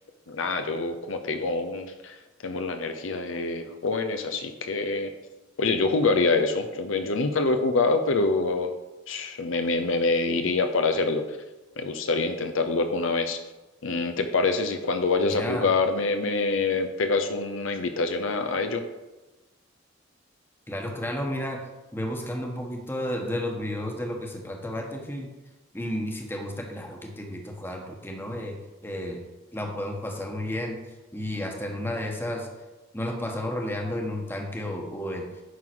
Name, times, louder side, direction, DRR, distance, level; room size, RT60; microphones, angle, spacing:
voice 1, 0.3-2.1 2.4-5.1 5.6-8.7 9.1-11.2 11.8-13.4 13.8-18.8, left 3 dB, 75° left, 7 dB, 0.7 m, -25 dB
voice 2, 15.2-15.7 20.7-21.6 21.9-25.3 25.7-28.6 28.8-29.2 29.5-30.8 31.1-32.5 32.9-35.3, left 1 dB, 10° left, 1 dB, 1.2 m, -32 dB
9.5 x 3.8 x 6.0 m, 1.1 s
head